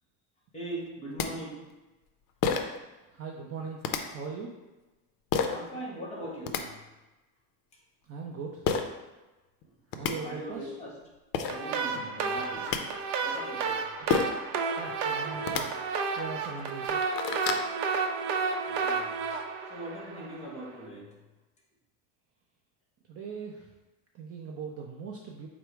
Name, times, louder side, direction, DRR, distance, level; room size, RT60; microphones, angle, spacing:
voice 1, 0.5-1.7 5.5-6.7 10.0-11.0 11.5-12.8 13.2-13.8 18.7-19.2 19.7-21.2, right 1 dB, 15° left, -3 dB, 1.1 m, -40 dB
sound 1, 0.9-1.0 1.2-1.3 2.4-2.8 3.8-4.0 5.3-5.6 6.2-6.6 8.6-8.8 9.6-9.7 9.9-10.1 11.0-11.1 11.3-11.6 12.4-12.8 14.1-14.4 15.4-15.6 16.3-16.4 16.8-17.7, left 6 dB, 55° left, 0.5 m, -28 dB
voice 2, 3.1-3.8 4.1-4.5 8.1-8.6 9.9-10.7 11.9-12.1 14.8-15.7 16.2-17.2 23.1-23.7 24.1-25.5, right 5 dB, 35° right, 0 dB, 0.4 m, -40 dB
sound 2, 11.5-20.6, right 5 dB, 80° right, 0.6 m, -31 dB
4.4 x 2.0 x 4.5 m, 1.1 s
supercardioid pair, 120°, 43 cm